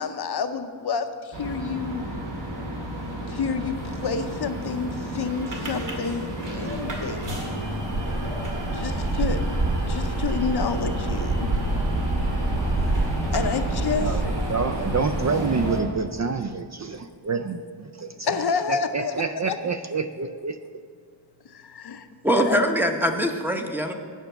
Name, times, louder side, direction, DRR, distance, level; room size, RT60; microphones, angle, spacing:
voice 1, 0.0-2.1 3.3-7.4 8.7-9.4 9.9-11.5 12.9-14.4 18.3-19.2 19.5-19.6 20.2-20.4 21.4-22.1 22.3-22.6, left 5 dB, 60° left, 8 dB, 0.7 m, -29 dB
sound 1, 1.3-15.8, right 1 dB, 70° right, 2.1 m, -28 dB
voice 2, 14.0-18.4 18.7-20.8, right 5 dB, 40° right, 9 dB, 0.4 m, -28 dB
voice 3, 22.2-23.9, equal, 5° right, 4 dB, 0.7 m, -23 dB
9.2 x 5.8 x 7.9 m, 2.1 s
wide cardioid pair, 120°, 44 cm